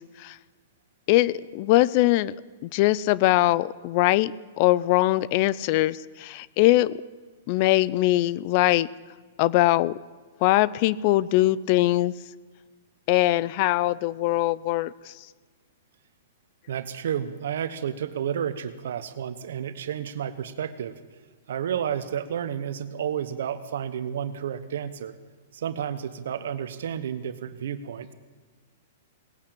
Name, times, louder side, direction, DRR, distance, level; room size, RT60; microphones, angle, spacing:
voice 1, 1.1-2.3 2.6-6.9 7.5-8.9 9.4-9.9 10.4-12.1 13.1-14.9, left 17 dB, 45° left, 20 dB, 0.4 m, -22 dB
voice 2, 16.7-21.0 21.5-25.1 25.5-28.1, right 9 dB, 70° right, 13 dB, 1.0 m, -31 dB
18.5 x 8.6 x 8.8 m, 1.4 s
hypercardioid pair, 135°, 0 cm